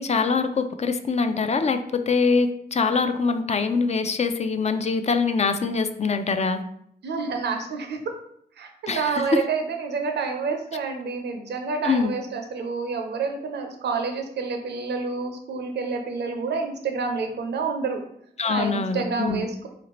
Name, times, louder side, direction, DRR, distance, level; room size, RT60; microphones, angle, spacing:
voice 1, 0.0-6.6 8.9-9.2 11.8-12.1 18.4-19.4, left 4 dB, 40° left, 8 dB, 0.4 m, -24 dB
voice 2, 7.0-8.0 8.6-18.0 18.5-19.7, right 4 dB, 90° right, 4 dB, 0.6 m, -28 dB
4.1 x 2.6 x 3.0 m, 0.70 s
cardioid pair, 60°, 17 cm